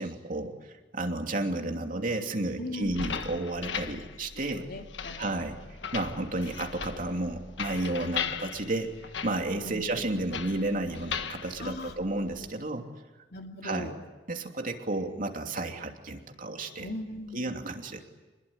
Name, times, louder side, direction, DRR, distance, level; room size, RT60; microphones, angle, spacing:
voice 1, 0.0-4.6 5.2-5.6 5.9-12.8 13.6-13.9 14.3-16.9 17.3-18.0, right 2 dB, 50° right, 3 dB, 2.9 m, -32 dB
voice 2, 2.6-3.0 4.5-5.2 8.2-8.4 9.6-10.0 11.6-11.9 13.3-14.0 16.8-17.5, left 1 dB, 60° left, 3 dB, 2.9 m, -39 dB
sound 1, 2.8-12.5, left 6 dB, 80° left, 1.4 m, -38 dB
27.0 x 21.5 x 9.9 m, 1.2 s
head